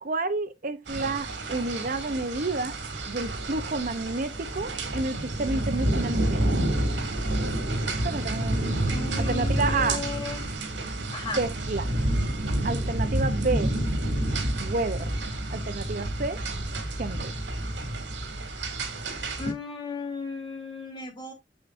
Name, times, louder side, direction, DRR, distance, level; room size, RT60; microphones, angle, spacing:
voice 1, 0.0-2.8 3.1-6.6 8.0-8.7 9.2-10.0 11.4-11.9 12.6-13.7 14.6-15.1 15.5-16.4 17.0-17.3, right 3 dB, 50° right, 0.7 m, -30 dB
sound 1, 0.9-19.5, right 1 dB, 80° right, 2.5 m, -29 dB
voice 2, 8.9-10.4 11.1-11.4 19.4-21.3, left 4 dB, 25° left, 3.3 m, -35 dB
8.7 x 6.8 x 2.6 m
head